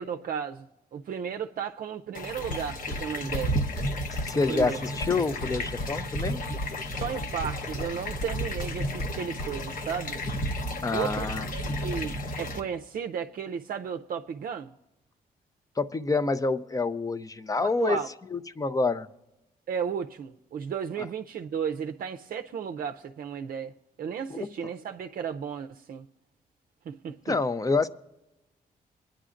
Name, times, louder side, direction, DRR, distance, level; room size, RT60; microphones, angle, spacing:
voice 1, 0.0-3.6 4.5-4.8 6.9-10.2 10.9-14.7 17.6-18.1 19.7-23.7 24.0-26.0 26.9-27.3, right 7 dB, 65° right, 0.5 m, -34 dB
sound 1, 2.2-12.6, equal, 60° left, 1.1 m, -33 dB
sound 2, 2.5-3.1 3.3-3.5 3.8-3.9 4.2-4.3 4.6-4.7 5.0-6.3 6.6-7.1 7.4-7.9 8.2-9.5, left 1 dB, 75° left, 3.8 m, -35 dB
voice 2, 4.3-6.4 10.8-11.5 15.8-18.0 18.3-19.1 24.3-24.5 27.3-27.9, left 3 dB, 20° left, 0.5 m, -27 dB
25.5 x 10.0 x 2.5 m
cardioid pair, 100°, 16 cm